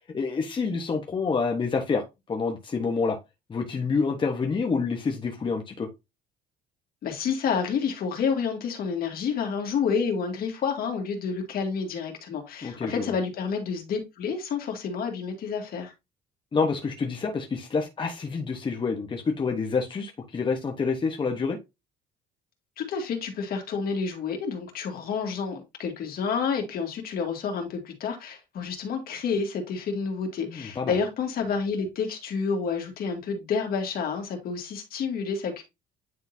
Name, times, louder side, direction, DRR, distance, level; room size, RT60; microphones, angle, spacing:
voice 1, 0.1-3.2 3.5-5.9 12.6-13.1 16.5-21.6 30.5-31.0, left 4 dB, 30° left, 1.0 m, -28 dB
voice 2, 7.0-15.9 22.8-35.6, left 5 dB, 60° left, 2.1 m, -29 dB
9.5 x 3.8 x 2.7 m
cardioid pair, 110°, 17 cm